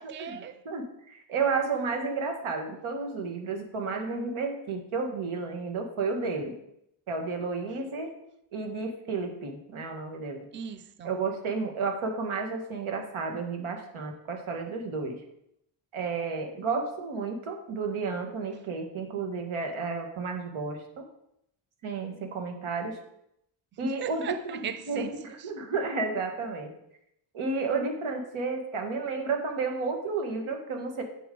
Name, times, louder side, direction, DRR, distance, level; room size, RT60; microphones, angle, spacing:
voice 1, 0.0-0.6 10.5-11.1 18.5-18.6 23.8-25.5, right 7 dB, 25° right, 0.4 m, -38 dB
voice 2, 0.7-6.6 7.1-8.1 8.5-10.5 11.0-15.2 15.9-21.0 21.8-23.0 23.8-24.2 24.5-24.6 24.9-25.1 25.4-26.7 27.3-31.0, right 4 dB, 85° right, 1.7 m, -32 dB
8.4 x 7.0 x 3.8 m
wide cardioid pair, 140°, 48 cm